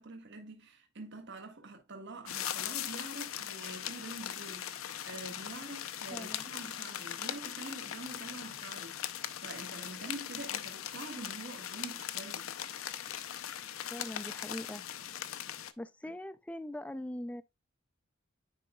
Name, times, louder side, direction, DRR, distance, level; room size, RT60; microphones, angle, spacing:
voice 1, 0.0-12.5 16.0-16.1, right 2 dB, 60° right, 1.6 m, -46 dB
sound 1, 2.3-15.7, left 10 dB, 85° left, 0.6 m, -40 dB
voice 2, 6.1-6.4 13.9-14.8 15.8-17.4, left 1 dB, 5° left, 0.4 m, -41 dB
9.8 x 4.9 x 2.3 m
head